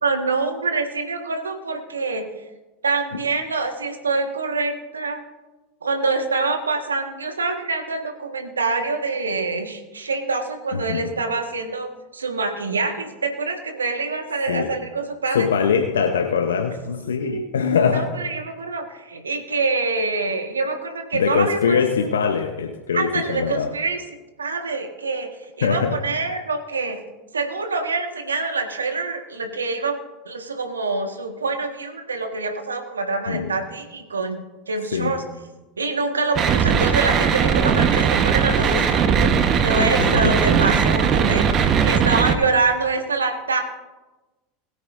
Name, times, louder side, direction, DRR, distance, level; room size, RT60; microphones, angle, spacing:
voice 1, 0.0-2.2 2.8-5.2 5.8-15.5 17.0-21.8 22.9-24.0 24.4-25.3 25.6-27.0 27.3-29.9 30.2-34.4 34.7-35.2 35.8-41.4 41.8-43.6, right 3 dB, 90° right, 4 dB, 1.6 m, -25 dB
voice 2, 10.7-11.1 14.5-14.7 15.3-18.1 21.1-23.7 25.6-26.0 33.3-33.5 34.9-35.2 39.8-40.4, left 6 dB, 80° left, 4 dB, 1.0 m, -22 dB
sound 1, 36.3-42.3, right 7 dB, 40° right, 1.2 m, -19 dB
21.0 x 9.2 x 2.6 m, 1.1 s
hypercardioid pair, 85°, 0 cm